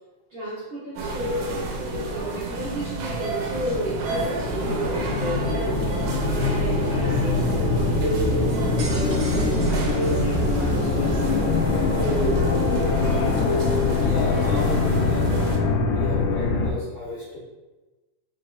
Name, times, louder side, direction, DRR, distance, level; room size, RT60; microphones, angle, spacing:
voice 1, 0.3-13.3, right 1 dB, 55° right, -12 dB, 1.4 m, -32 dB
sound 1, 1.0-15.6, right 3 dB, 90° right, 2.2 m, -31 dB
sound 2, 3.1-16.7, left 3 dB, 80° left, 1.9 m, -23 dB
sound 3, 8.5-11.0, right 2 dB, 75° right, 1.2 m, -40 dB
voice 2, 13.9-15.3 15.9-17.4, left 3 dB, 50° left, -11 dB, 1.9 m, -32 dB
5.2 x 3.9 x 2.2 m, 1.2 s
omnidirectional pair, 3.6 m